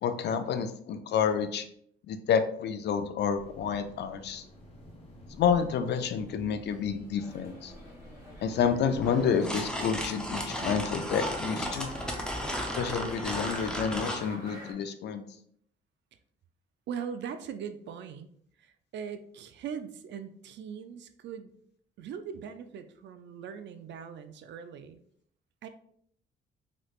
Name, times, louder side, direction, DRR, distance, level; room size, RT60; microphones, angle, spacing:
voice 1, 0.0-1.7 2.1-4.4 5.4-7.7 8.4-11.9 12.8-15.2, left 7 dB, 60° left, 9 dB, 0.4 m, -29 dB
sound 1, 3.3-9.1, equal, 30° left, 1.1 m, -51 dB
sound 2, 7.2-14.7, equal, 15° right, 1.5 m, -47 dB
sound 3, 9.0-14.2, equal, 5° left, 0.6 m, -34 dB
voice 2, 16.9-18.3 18.6-21.5 22.0-25.0 25.6-25.7, right 7 dB, 65° right, 10 dB, 0.4 m, -40 dB
3.1 x 3.1 x 2.4 m, 0.66 s
cardioid pair, 90°, 20 cm